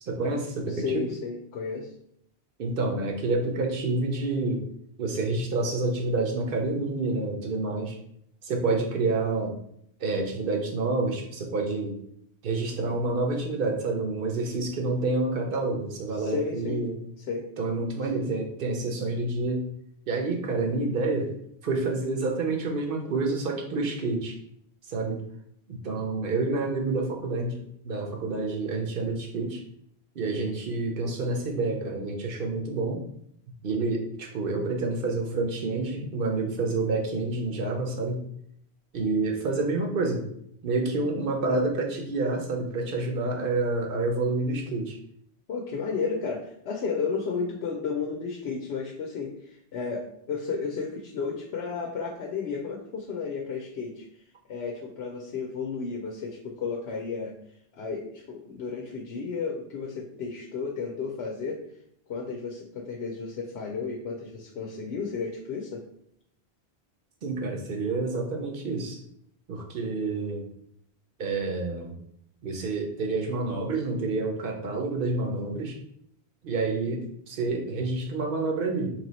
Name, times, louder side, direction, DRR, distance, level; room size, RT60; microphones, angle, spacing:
voice 1, 0.1-1.0 2.6-4.6 5.0-8.0 8.4-9.5 10.0-12.0 12.4-17.0 17.6-19.6 20.1-21.3 21.6-24.3 24.9-25.2 25.7-29.6 30.2-33.0 33.6-38.2 38.9-40.3 40.6-45.0 67.2-69.0 69.5-70.5 71.2-71.9 72.4-75.8 76.4-78.9, right 3 dB, 60° right, 2 dB, 0.9 m, -28 dB
voice 2, 0.7-1.9 16.1-16.8 17.3-17.5 45.5-54.0 54.5-57.3 57.8-61.6 62.1-65.8, left 5 dB, 80° left, 0 dB, 0.9 m, -33 dB
3.3 x 2.9 x 4.0 m, 0.70 s
omnidirectional pair, 1.1 m